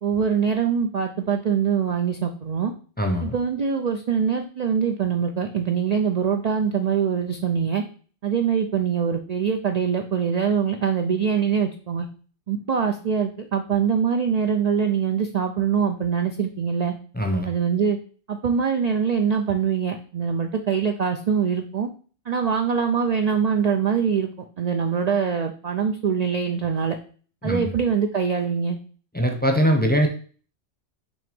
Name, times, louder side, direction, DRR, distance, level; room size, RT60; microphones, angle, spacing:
voice 1, 0.0-2.7 3.2-7.8 8.2-12.1 12.5-16.9 17.5-18.0 18.3-21.9 22.3-24.3 24.6-27.0 27.4-28.8, right 7 dB, 50° right, 4 dB, 0.5 m, -23 dB
voice 2, 3.0-3.3 17.1-17.5 27.4-27.7 29.1-30.1, equal, 10° left, 3 dB, 0.7 m, -21 dB
6.2 x 3.0 x 5.2 m, 0.41 s
omnidirectional pair, 1.2 m